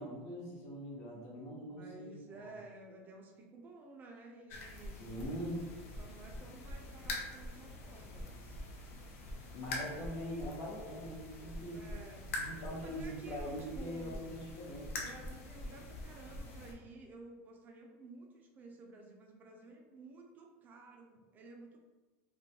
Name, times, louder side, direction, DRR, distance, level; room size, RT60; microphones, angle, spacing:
voice 1, 0.0-2.5 5.0-5.6 9.5-11.8 12.4-15.0, equal, 50° left, -3 dB, 0.8 m, -43 dB
voice 2, 1.7-5.0 6.0-8.6 11.7-12.3 12.7-14.3 15.0-21.8, right 2 dB, 25° right, 1 dB, 0.4 m, -53 dB
sound 1, 4.5-16.7, left 1 dB, 85° left, 0.5 m, -45 dB
2.2 x 2.2 x 2.7 m, 1.3 s
supercardioid pair, 150°, 7 cm